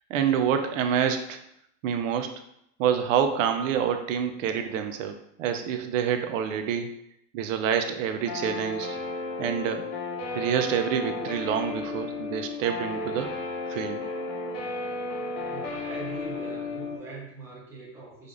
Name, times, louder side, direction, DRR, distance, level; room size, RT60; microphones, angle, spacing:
voice 1, 0.1-1.4 1.8-2.3 2.8-6.9 7.3-9.0 9.4-9.9 10.3-13.4 13.7-14.1, right 8 dB, 80° right, 7 dB, 0.6 m, -27 dB
Guitar, 8.3-17.0, left 3 dB, 35° left, 0.8 m, -33 dB
voice 2, 15.5-18.3, right 3 dB, 5° right, -6 dB, 0.8 m, -42 dB
5.0 x 2.5 x 2.5 m, 0.76 s
supercardioid pair, 165°, 38 cm